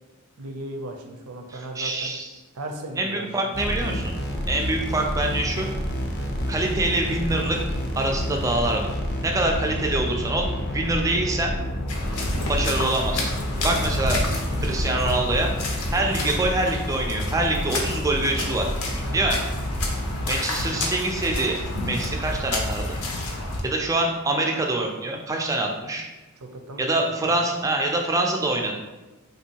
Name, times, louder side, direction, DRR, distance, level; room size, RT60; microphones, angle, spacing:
voice 1, 0.4-2.1 2.5-3.6 13.5-13.8 19.0-19.2 26.4-27.3, right 1 dB, 80° right, 3 dB, 0.5 m, -37 dB
voice 2, 1.5-2.3 3.0-4.1 4.5-5.7 6.5-7.6 8.0-8.9 9.2-11.5 12.5-13.3 13.6-14.2 14.6-15.5 15.9-18.7 19.1-19.4 20.3-21.6 21.9-23.0 23.6-26.1 26.8-28.8, right 2 dB, 15° right, 1 dB, 0.3 m, -25 dB
sound 1, 3.5-20.3, equal, 45° left, 0.5 m, -29 dB
sound 2, 11.9-23.6, left 2 dB, 85° left, 0.6 m, -30 dB
3.4 x 2.6 x 2.8 m, 1.1 s
head